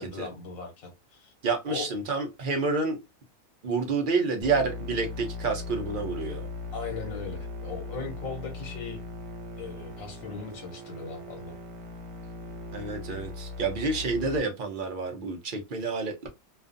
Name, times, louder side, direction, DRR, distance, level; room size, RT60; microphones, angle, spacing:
voice 1, 0.0-1.3 1.7-1.9 6.7-9.0 9.6-11.5, left 4 dB, 80° left, 1.2 m, -38 dB
voice 2, 1.4-3.0 3.6-6.5 12.7-16.3, right 4 dB, 55° right, 0.6 m, -29 dB
sound 1, 4.4-14.4, left 3 dB, 90° right, 1.2 m, -39 dB
2.4 x 2.2 x 2.5 m
omnidirectional pair, 1.4 m